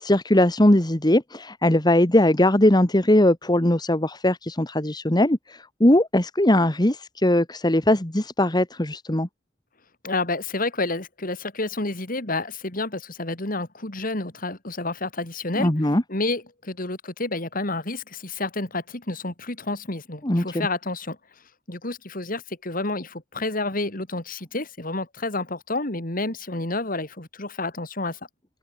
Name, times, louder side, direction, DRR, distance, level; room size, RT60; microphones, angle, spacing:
voice 1, 0.0-9.3 15.6-16.0 20.2-20.7, left 1 dB, 20° left, 1.6 m, -20 dB
voice 2, 10.0-15.7 16.1-21.2 21.7-28.2, left 2 dB, 45° left, 3.2 m, -29 dB
head